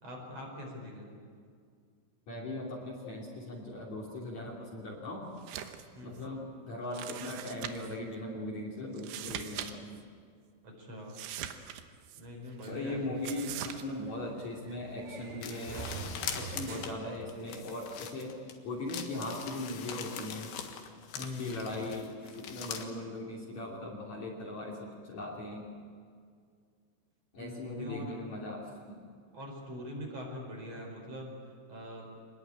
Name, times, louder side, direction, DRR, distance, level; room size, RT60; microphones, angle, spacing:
voice 1, 0.0-1.2 5.9-6.3 10.6-11.2 12.2-13.3 21.1-21.7 27.4-28.1 29.3-32.1, left 1 dB, 35° right, 0 dB, 5.6 m, -43 dB
voice 2, 2.3-5.3 6.0-10.0 12.7-16.0 16.3-18.4 18.6-20.5 21.2-25.7 27.3-29.0, left 1 dB, 45° left, -2 dB, 3.7 m, -39 dB
sound 1, 5.4-5.9 6.2-6.3 6.9-8.0 8.9-9.7 10.0-10.1 11.1-12.2 13.2-13.8, right 11 dB, 90° right, 3.5 m, -41 dB
sound 2, 12.6-17.9, right 4 dB, 75° right, 4.6 m, -46 dB
sound 3, 15.4-18.5 18.9-22.8, left 8 dB, 75° left, 3.7 m, -42 dB
25.5 x 20.5 x 8.9 m, 2.1 s
omnidirectional pair, 5.0 m